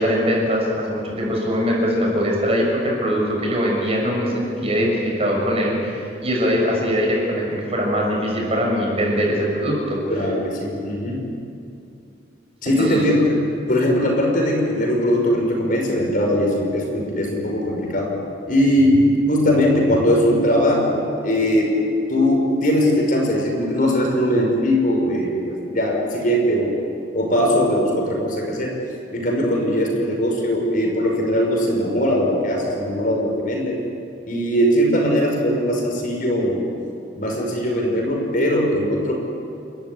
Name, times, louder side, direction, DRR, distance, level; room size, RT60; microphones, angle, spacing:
voice 1, 0.0-10.0 12.8-13.0, equal, 35° right, -2 dB, 6.6 m, -21 dB
voice 2, 10.1-11.2 12.6-13.3 13.7-18.1 18.5-21.7 22.1-26.7 27.1-28.8 29.1-33.8 34.3-36.6 37.2-39.2, equal, 50° left, 0 dB, 5.6 m, -20 dB
30.0 x 14.0 x 9.9 m, 2.5 s
head